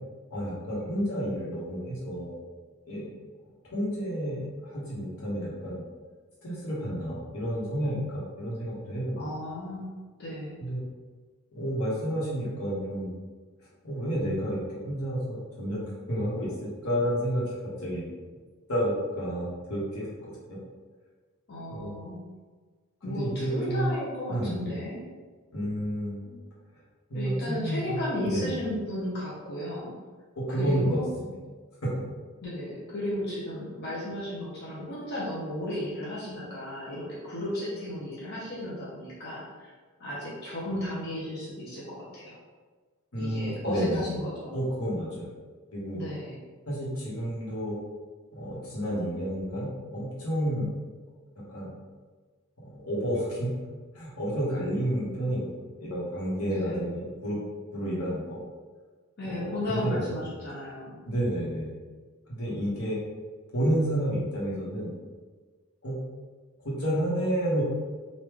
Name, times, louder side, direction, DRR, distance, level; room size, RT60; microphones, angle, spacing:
voice 1, 0.3-2.4 2.9-3.1 3.7-5.9 6.4-9.1 10.6-10.8 11.5-13.1 13.8-15.8 16.1-18.0 18.7-20.6 21.7-21.9 23.0-23.9 24.3-24.6 25.5-26.2 27.1-28.0 28.2-28.6 30.5-31.3 31.8-32.0 43.1-44.0 44.5-45.3 45.7-46.0 46.7-47.8 48.3-50.7 51.3-51.7 52.6-53.6 53.9-55.5 55.8-57.4 57.7-58.4 59.3-60.2 61.1-61.7 62.3-63.0 63.5-64.9 65.8-66.0 66.6-67.6, equal, 90° left, -6 dB, 1.2 m, -30 dB
voice 2, 9.2-9.9 10.2-10.6 21.5-22.2 23.0-25.0 26.2-26.4 27.1-29.9 30.5-31.1 32.4-39.7 40.0-42.4 43.1-44.6 45.9-46.4 56.5-57.1 59.2-61.0, left 1 dB, 50° left, -7 dB, 0.8 m, -34 dB
3.1 x 2.5 x 3.6 m, 1.4 s
head